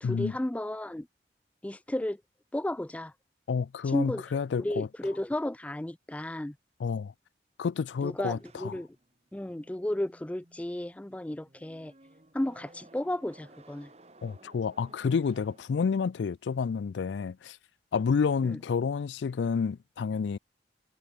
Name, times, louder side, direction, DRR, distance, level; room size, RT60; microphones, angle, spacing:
voice 1, 0.0-1.1 1.6-2.2 2.5-3.1 3.9-6.6 8.0-8.9 9.3-11.9 12.3-13.9 18.4-18.6, left 1 dB, 10° left, 0.3 m, -33 dB
voice 2, 3.5-4.9 6.8-7.1 7.6-8.7 14.2-17.6 17.9-20.4, left 5 dB, 85° left, 0.4 m, -29 dB
sound 1, 8.3-16.3, right 2 dB, 35° right, 2.9 m, -57 dB
head